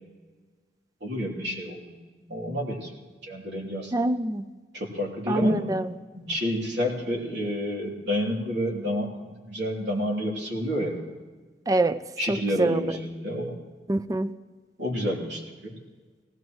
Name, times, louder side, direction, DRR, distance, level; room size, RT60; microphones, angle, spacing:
voice 1, 1.0-2.0 2.3-2.9 3.2-3.9 4.7-5.7 6.1-11.0 12.2-13.6 14.8-15.8, equal, 85° right, -2 dB, 3.1 m, -29 dB
voice 2, 3.9-4.5 5.3-5.9 11.7-12.0 12.3-12.9 13.9-14.3, right 2 dB, 20° right, 13 dB, 0.4 m, -25 dB
19.0 x 16.5 x 3.1 m, 1.4 s
head